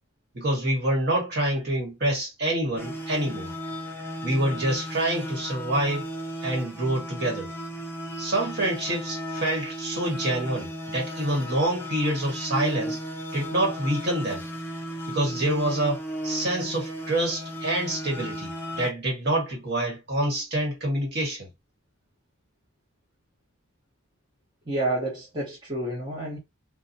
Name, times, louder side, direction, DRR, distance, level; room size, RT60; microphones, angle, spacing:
voice 1, 0.3-3.5 4.2-6.1 6.4-7.5 8.2-13.0 13.3-14.4 15.1-21.5, right 1 dB, 50° right, 1.3 m, -27 dB
sound 1, 2.8-18.9, equal, 10° left, 0.5 m, -35 dB
voice 2, 24.7-26.4, right 1 dB, 20° right, 0.9 m, -29 dB
2.7 x 2.2 x 2.6 m
head